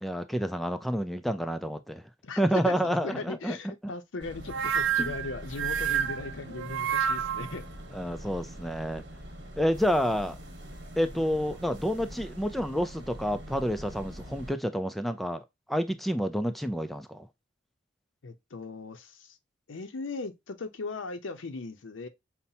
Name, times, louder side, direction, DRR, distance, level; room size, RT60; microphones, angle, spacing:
voice 1, 0.0-2.0 2.4-3.9 5.0-5.1 7.9-9.0 9.6-10.4 11.0-17.3, equal, ahead, 0.3 m, -29 dB
voice 2, 2.2-2.8 3.0-7.7 18.2-19.4 19.7-22.1, left 3 dB, 90° left, 0.6 m, -38 dB
sound 1, 4.2-14.5, equal, 60° right, 1.2 m, -44 dB
sound 2, 4.5-7.6, right 8 dB, 85° right, 0.4 m, -29 dB
5.5 x 2.1 x 2.7 m
head